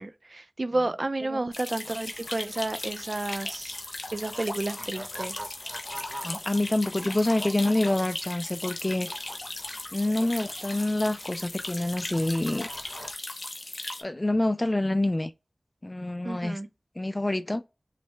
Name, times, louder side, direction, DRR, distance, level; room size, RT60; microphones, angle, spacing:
voice 1, 0.0-3.8 4.1-5.4 16.2-16.7, right 2 dB, 55° right, 0.5 m, -31 dB
sound 1, 1.5-14.0, left 2 dB, 65° left, 0.7 m, -38 dB
sound 2, 1.8-13.1, right 1 dB, 15° right, 0.9 m, -46 dB
voice 2, 6.2-9.1 9.9-12.7 14.0-15.3 15.8-16.6 17.0-17.6, left 1 dB, 35° left, 0.4 m, -27 dB
3.2 x 3.2 x 3.1 m
wide cardioid pair, 40°, 0 cm